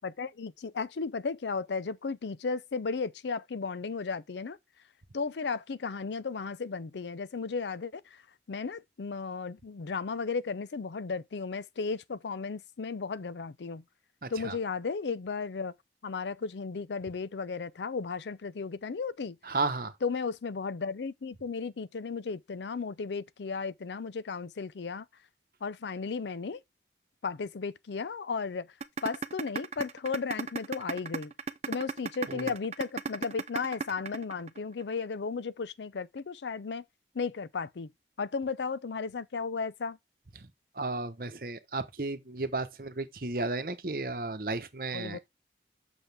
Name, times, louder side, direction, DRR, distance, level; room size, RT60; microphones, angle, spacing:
voice 1, 0.0-4.6 5.1-8.0 8.5-13.8 14.3-15.7 16.0-19.4 20.0-25.0 25.6-26.6 27.2-28.7 29.0-31.3 31.7-36.8 37.2-37.9 38.2-40.0 44.9-45.2, left 5 dB, 85° left, 0.5 m, -34 dB
voice 2, 14.2-14.6 19.4-19.9 32.3-32.5 40.8-45.2, right 3 dB, 55° right, 1.0 m, -33 dB
sound 1, 28.8-34.8, right 4 dB, 35° right, 0.6 m, -33 dB
7.9 x 6.4 x 3.4 m
head